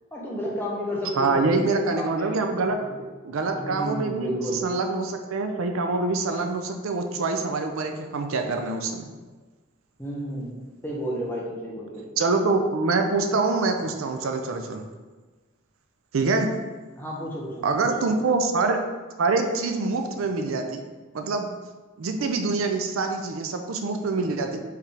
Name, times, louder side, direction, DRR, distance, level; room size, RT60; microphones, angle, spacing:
voice 1, 0.1-1.5 1.9-2.5 2.8-2.9 3.6-4.6 10.0-12.1 17.0-18.2, equal, 10° left, -4 dB, 0.7 m, -32 dB
voice 2, 1.2-2.8 3.2-4.3 4.6-9.1 12.2-14.8 16.1-16.5 17.6-18.8 19.2-20.8 21.1-21.5 22.0-24.6, right 3 dB, 80° right, 5 dB, 0.5 m, -25 dB
4.6 x 3.5 x 3.3 m, 1.3 s
head